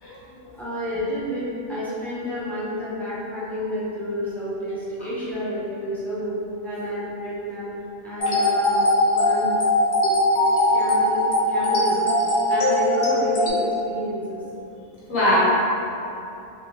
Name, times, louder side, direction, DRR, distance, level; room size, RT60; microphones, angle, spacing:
voice 1, 0.0-0.5 15.1-15.4, equal, 80° left, -8 dB, 1.4 m, -22 dB
voice 2, 0.6-6.4 6.6-7.7 8.0-8.8 9.1-9.6 10.7-11.2 11.5-14.4, equal, ahead, -10 dB, 0.4 m, -30 dB
sound 1, 8.2-13.5, left 1 dB, 60° left, 0.4 m, -20 dB
3.2 x 2.8 x 3.1 m, 2.8 s
omnidirectional pair, 1.4 m